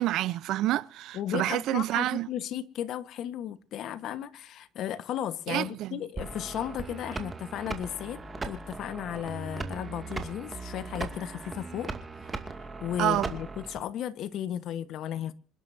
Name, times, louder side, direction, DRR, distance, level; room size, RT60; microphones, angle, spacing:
voice 1, 0.0-2.3 5.5-6.0 13.0-13.3, right 14 dB, 75° right, 0.7 m, -28 dB
voice 2, 1.1-11.9 12.8-15.3, left 10 dB, 65° left, 1.3 m, -35 dB
sound 1, 6.2-13.8, right 3 dB, 20° right, 2.3 m, -38 dB
27.5 x 11.0 x 2.7 m
cardioid pair, 120°, 0 cm